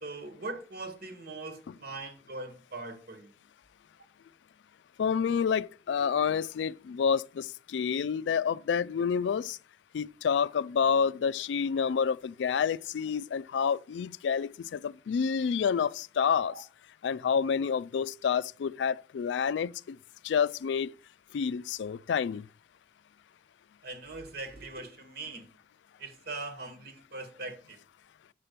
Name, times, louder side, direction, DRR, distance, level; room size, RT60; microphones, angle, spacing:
voice 1, 0.0-3.3 16.5-16.6 23.8-25.5 26.0-27.8, right 3 dB, 60° right, 1.7 m, -41 dB
voice 2, 5.0-9.6 9.9-16.5 17.0-20.0 20.2-20.9 21.3-22.4, left 6 dB, 70° left, 0.3 m, -28 dB
7.4 x 5.7 x 6.8 m
head